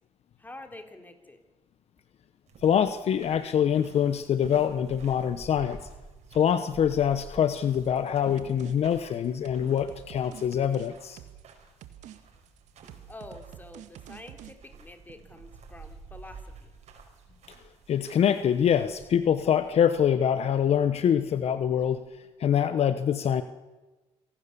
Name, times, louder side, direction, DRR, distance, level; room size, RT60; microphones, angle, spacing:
voice 1, 0.4-1.4 13.1-16.7, left 2 dB, 15° left, 5 dB, 3.7 m, -47 dB
sound 1, 2.5-22.1, right 4 dB, 65° right, 5.5 m, -51 dB
voice 2, 2.6-5.8 6.3-11.2 17.9-22.0 22.4-23.4, left 8 dB, 60° left, 11 dB, 1.1 m, -24 dB
sound 2, 7.7-8.1 8.4-8.7 9.0-11.5 11.8-12.2 12.5-14.5, right 11 dB, 85° right, 1.7 m, -47 dB
26.5 x 17.5 x 7.0 m, 1.2 s
cardioid pair, 90°, 12 cm